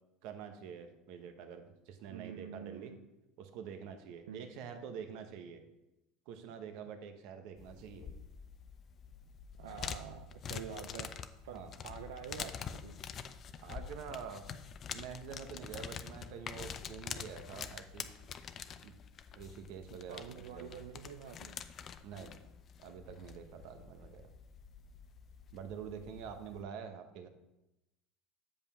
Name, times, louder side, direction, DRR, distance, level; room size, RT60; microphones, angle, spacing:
voice 1, 0.2-2.9 3.4-5.6 6.3-8.1 11.5-11.7 13.6-14.5 14.9-18.1 18.8-18.9 19.3-20.8 22.0-22.3 22.8-24.3 25.5-27.3, right 7 dB, 70° right, 7 dB, 0.9 m, -46 dB
voice 2, 2.1-3.0 4.3-4.5 9.6-11.1 11.5-13.0 20.1-21.6, right 8 dB, 90° right, 6 dB, 0.5 m, -47 dB
sound 1, 7.6-26.6, left 7 dB, 40° left, 0.5 m, -46 dB
7.2 x 5.4 x 5.5 m, 0.96 s
supercardioid pair, 100°, 0 cm